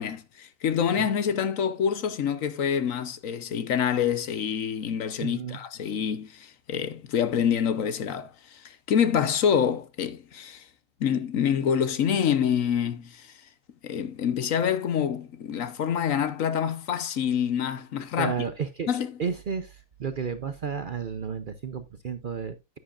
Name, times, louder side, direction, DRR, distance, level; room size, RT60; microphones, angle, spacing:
voice 1, 0.0-10.6 11.0-13.3 13.8-18.3 18.9-19.1, left 8 dB, 65° left, 1.3 m, -26 dB
voice 2, 5.2-5.6 18.2-18.9 19.2-22.8, right 6 dB, 50° right, 0.7 m, -32 dB
10.0 x 9.7 x 2.5 m
omnidirectional pair, 1.5 m